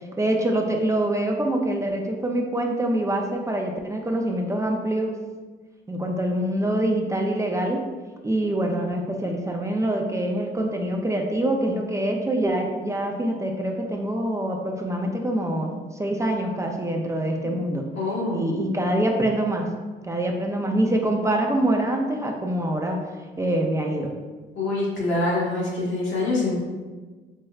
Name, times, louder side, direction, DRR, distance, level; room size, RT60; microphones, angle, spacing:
voice 1, 0.2-5.1 5.9-7.8 8.2-17.8 18.3-19.7 20.0-23.1 23.4-24.1, right 1 dB, 15° right, 1 dB, 0.4 m, -25 dB
voice 2, 17.9-18.4 24.5-26.6, left 2 dB, 75° left, -5 dB, 1.3 m, -25 dB
4.4 x 3.0 x 2.3 m, 1.4 s
cardioid pair, 90°, 20 cm